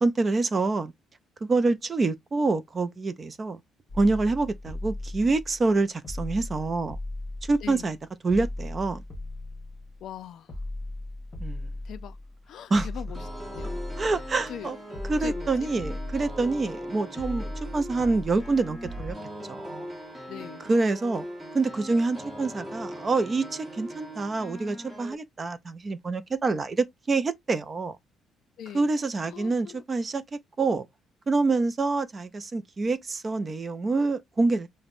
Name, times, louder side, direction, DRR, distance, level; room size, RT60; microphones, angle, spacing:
voice 1, 0.0-0.9 1.4-3.6 4.0-7.0 7.5-8.0 8.2-9.0 11.4-11.7 12.7-12.9 14.0-14.8 15.1-19.2 19.5-19.9 20.7-21.2 21.5-28.0 28.7-30.9 31.3-34.7, right 3 dB, 20° right, 0.3 m, -26 dB
sound 1, 3.9-5.7 6.0-8.0 8.3-10.1 10.5-12.4 12.7-14.6 14.9-16.8 17.2-19.1, left 1 dB, 30° left, 1.1 m, -37 dB
voice 2, 7.6-7.9 10.0-10.5 11.8-12.2 12.5-13.8 14.5-14.7 15.2-15.7 20.3-20.7 28.6-28.9 29.3-29.8, left 10 dB, 55° left, 0.4 m, -41 dB
sound 2, 13.1-25.1, equal, 5° right, 1.0 m, -40 dB
5.1 x 2.1 x 2.4 m
cardioid pair, 165°, 0 cm